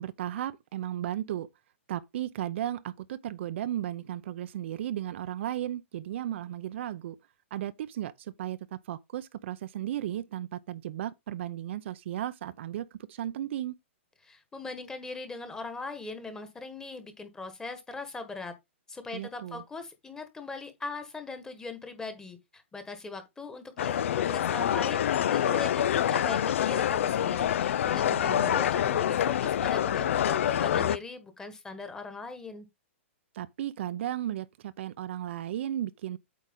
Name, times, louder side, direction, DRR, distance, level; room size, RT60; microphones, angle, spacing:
voice 1, 0.0-1.5 1.9-7.2 7.5-13.7 19.1-19.6 28.1-28.6 33.3-36.2, right 12 dB, 60° right, 0.6 m, -35 dB
voice 2, 14.2-18.5 18.9-32.7, left 3 dB, 10° left, 1.5 m, -40 dB
sound 1, 23.8-31.0, left 10 dB, 70° left, 0.4 m, -26 dB
8.4 x 4.7 x 3.8 m
hypercardioid pair, 140°, 7 cm